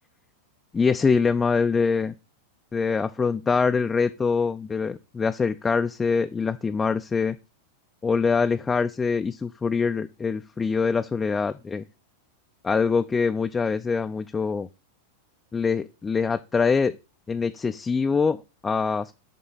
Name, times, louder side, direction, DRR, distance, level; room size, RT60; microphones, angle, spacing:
voice 1, 0.7-2.1 2.7-7.4 8.0-11.8 12.6-14.7 15.5-17.0 17.3-19.1, left 5 dB, 15° left, 8 dB, 0.3 m, -24 dB
10.0 x 3.7 x 4.0 m, 0.29 s
figure-of-eight pair, 90°, 0 cm